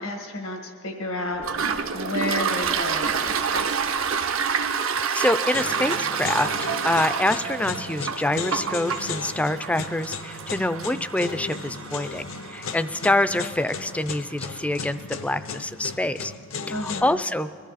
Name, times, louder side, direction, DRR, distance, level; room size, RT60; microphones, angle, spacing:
voice 1, 0.0-3.9 16.7-17.2, left 1 dB, 90° left, 2 dB, 1.8 m, -32 dB
Toilet flush, 1.4-14.8, right 6 dB, 75° right, 0.8 m, -29 dB
voice 2, 4.9-6.6 6.8-16.3 16.7-17.5, left 1 dB, 5° left, 13 dB, 0.3 m, -26 dB
sound 1, 5.5-17.0, left 5 dB, 75° left, 0.7 m, -36 dB
22.0 x 14.0 x 4.1 m, 2.4 s
head